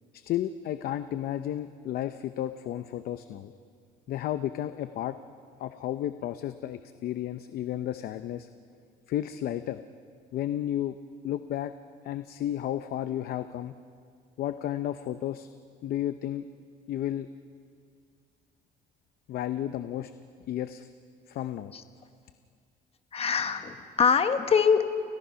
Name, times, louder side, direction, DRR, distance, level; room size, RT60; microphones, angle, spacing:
voice 1, 0.1-3.5 4.1-5.2 5.6-8.5 9.1-9.8 10.3-11.0 11.2-11.7 12.0-13.7 14.4-15.5 15.8-16.5 16.9-17.3 19.3-20.1 20.5-20.9 21.3-21.7, left 12 dB, 65° left, 10 dB, 0.7 m, -32 dB
voice 2, 23.1-24.8, left 6 dB, 35° left, 8 dB, 1.2 m, -23 dB
30.0 x 17.0 x 5.7 m, 2.1 s
cardioid pair, 110°, 17 cm